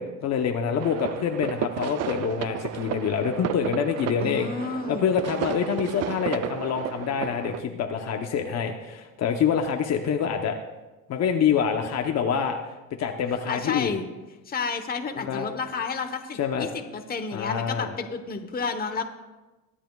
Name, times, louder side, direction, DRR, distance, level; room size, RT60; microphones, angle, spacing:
voice 1, 0.0-4.5 4.9-10.6 11.1-12.6 13.0-13.9 15.2-15.5 16.4-16.7 17.3-17.9, left 7 dB, 50° left, 4 dB, 0.9 m, -26 dB
sound 1, 0.8-7.6, right 10 dB, 50° right, 0.5 m, -33 dB
voice 2, 4.2-5.1 13.5-14.0 14.5-19.0, left 5 dB, 25° left, 6 dB, 1.1 m, -31 dB
23.0 x 10.0 x 2.4 m, 1.1 s
cardioid pair, 120°, 34 cm